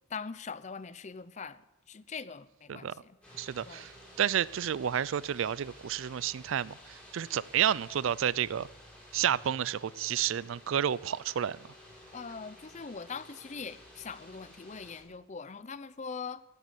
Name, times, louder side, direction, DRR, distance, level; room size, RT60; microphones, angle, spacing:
voice 1, 0.1-1.6 1.9-3.2 3.6-3.9 12.1-16.4, left 5 dB, 35° left, 16 dB, 0.5 m, -42 dB
sound 1, 3.2-15.0, equal, 5° left, 4.4 m, -53 dB
voice 2, 3.4-3.9 4.2-6.7 7.1-8.7 9.1-11.6, right 9 dB, 70° right, 21 dB, 0.4 m, -30 dB
16.0 x 8.4 x 8.3 m, 1.1 s
head